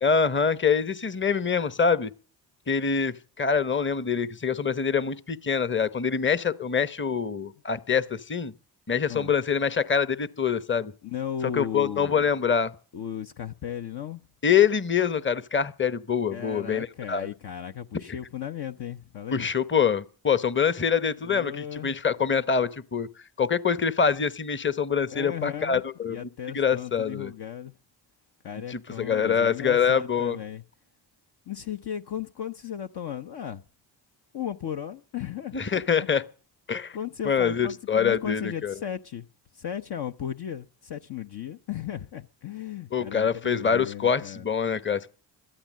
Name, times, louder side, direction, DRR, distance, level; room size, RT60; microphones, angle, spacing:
voice 1, 0.0-2.1 2.7-8.5 8.9-10.9 11.5-12.7 14.4-17.3 18.1-18.2 19.3-23.1 23.4-26.2 26.5-27.3 28.7-30.4 35.5-36.2 36.7-37.0 37.2-38.7 42.9-45.1, left 6 dB, 25° left, 1.0 m, -25 dB
voice 2, 11.0-12.3 12.9-14.2 16.3-19.5 21.2-22.0 25.1-25.8 26.1-27.7 28.4-30.6 31.5-33.6 34.3-35.8 36.9-39.3 39.5-44.5, left 9 dB, 50° left, 0.8 m, -36 dB
13.0 x 13.0 x 7.5 m
hypercardioid pair, 45°, 49 cm